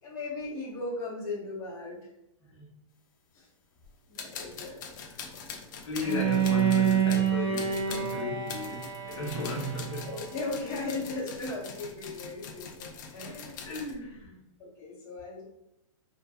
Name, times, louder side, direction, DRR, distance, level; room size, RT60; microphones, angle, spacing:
voice 1, 0.0-2.1 3.3-3.5 4.1-4.8 10.0-13.7 14.6-15.4, left 2 dB, 15° left, 0.8 m, -37 dB
sound 1, 3.8-3.9 4.1-13.9, left 6 dB, 35° left, 0.4 m, -43 dB
voice 2, 5.5-10.1 13.6-14.4, left 1 dB, 60° left, 1.0 m, -35 dB
Bowed string instrument, 6.0-11.0, right 8 dB, 50° right, 0.5 m, -28 dB
3.4 x 2.2 x 2.6 m
hypercardioid pair, 165°, 18 cm